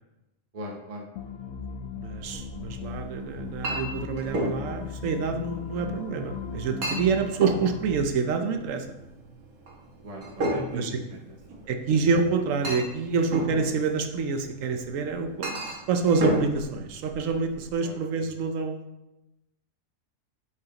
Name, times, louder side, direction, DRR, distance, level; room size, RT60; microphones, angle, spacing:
voice 1, 0.5-1.1 5.7-5.9 10.0-11.2 17.8-18.0, equal, 35° right, 0 dB, 0.8 m, -39 dB
sound 1, 1.2-8.0, left 6 dB, 80° left, 1.0 m, -38 dB
voice 2, 2.0-8.9 10.7-11.0 11.7-15.5 15.9-18.9, right 4 dB, 70° right, 6 dB, 1.1 m, -27 dB
Chink clink, 2.2-17.7, right 1 dB, 85° right, 1.7 m, -35 dB
8.3 x 4.8 x 2.9 m, 0.96 s
omnidirectional pair, 1.5 m